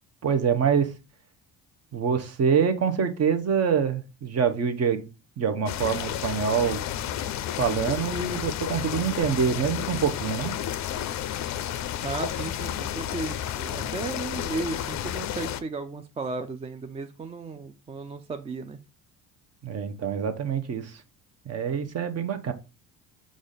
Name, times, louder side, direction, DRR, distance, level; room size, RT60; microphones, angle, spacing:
voice 1, 0.2-0.9 1.9-5.1 5.4-6.8 7.6-10.5 19.6-21.0 21.5-22.5, right 7 dB, 40° right, 0.8 m, -25 dB
sound 1, 5.7-15.6, left 11 dB, 45° left, 0.5 m, -31 dB
voice 2, 12.0-18.8, right 3 dB, 15° right, 0.3 m, -35 dB
4.8 x 2.5 x 3.9 m
hypercardioid pair, 65°, 40 cm